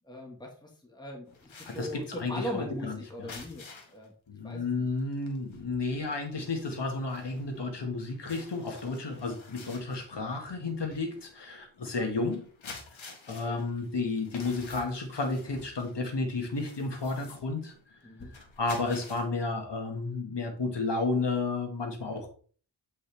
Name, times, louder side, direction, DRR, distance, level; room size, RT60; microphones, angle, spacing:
voice 1, 0.0-4.1 4.4-4.9 9.6-9.8 13.3-13.6 18.0-18.3, left 1 dB, 10° left, 0 dB, 1.7 m, -40 dB
sound 1, 1.3-4.1 4.5-4.7 5.0-19.2, left 4 dB, 80° left, 1.7 m, -50 dB
voice 2, 1.6-3.3 4.3-12.4 13.0-17.7 18.6-22.3, left 3 dB, 60° left, 4 dB, 2.0 m, -32 dB
8.2 x 5.4 x 3.5 m, 0.42 s
wide cardioid pair, 75°, 46 cm